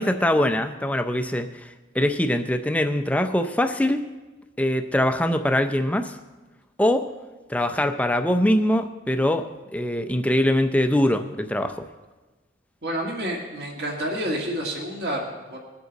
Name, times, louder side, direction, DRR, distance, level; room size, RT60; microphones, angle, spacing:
voice 1, 0.0-1.7 1.9-4.1 4.6-6.2 6.8-7.1 7.5-11.8, left 1 dB, 5° left, 7 dB, 0.5 m, -23 dB
voice 2, 12.8-15.6, equal, 55° right, 0 dB, 1.8 m, -29 dB
20.5 x 8.0 x 4.0 m, 1.2 s
head